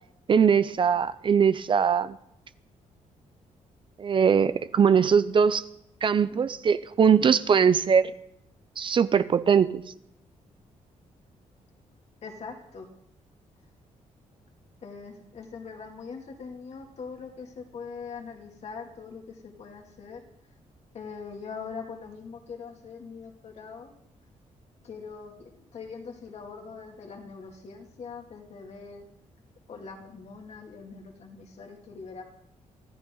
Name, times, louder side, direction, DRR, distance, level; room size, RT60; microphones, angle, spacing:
voice 1, 0.3-2.2 4.0-5.6 6.0-8.1 8.8-9.8, right 7 dB, 40° right, 14 dB, 0.5 m, -21 dB
voice 2, 12.2-12.9 14.8-20.2 20.9-23.9 24.8-29.1 29.7-32.2, left 5 dB, 55° left, 2 dB, 2.6 m, -42 dB
24.0 x 14.5 x 3.9 m, 0.77 s
cardioid pair, 125°, 13 cm